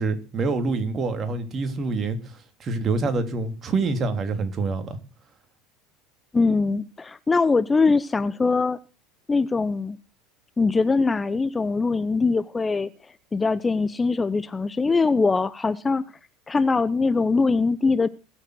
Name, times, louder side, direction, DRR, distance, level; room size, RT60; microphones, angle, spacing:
voice 1, 0.0-5.0, right 3 dB, 35° right, 3.3 m, -26 dB
voice 2, 6.3-8.8 9.3-10.0 10.6-12.9 13.3-16.0 16.5-18.1, left 4 dB, 20° left, 0.8 m, -22 dB
21.5 x 7.8 x 6.3 m
hypercardioid pair, 75°, 0 cm